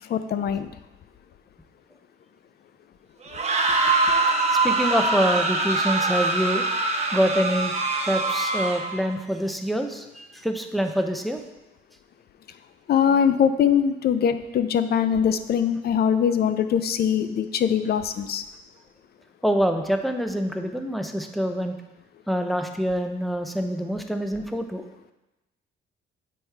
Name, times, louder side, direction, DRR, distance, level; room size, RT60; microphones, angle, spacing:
voice 1, 0.1-0.7 12.9-18.4, left 8 dB, 55° left, 11 dB, 0.5 m, -22 dB
sound 1, 3.3-9.0, right 3 dB, 35° right, 0.8 m, -23 dB
voice 2, 4.2-6.6 7.1-7.7 8.0-11.4 19.4-21.8 22.3-24.8, equal, ahead, 5 dB, 0.6 m, -26 dB
7.2 x 4.5 x 3.4 m, 1.0 s
cardioid pair, 90°, 20 cm